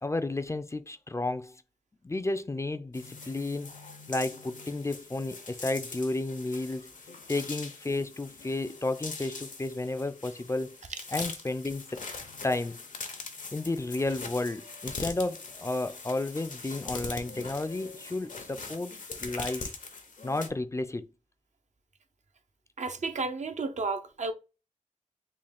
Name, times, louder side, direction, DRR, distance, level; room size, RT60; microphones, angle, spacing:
voice 1, 0.0-1.6 2.0-3.7 4.1-6.9 7.3-10.8 11.1-12.0 12.4-12.8 13.5-18.9 19.2-19.7 20.2-21.1, left 2 dB, 25° left, 0.3 m, -32 dB
sound 1, 2.9-20.5, left 4 dB, 85° left, 0.7 m, -42 dB
voice 2, 22.8-24.3, right 3 dB, 65° right, 0.5 m, -32 dB
3.7 x 2.3 x 3.5 m
cardioid pair, 50°, 13 cm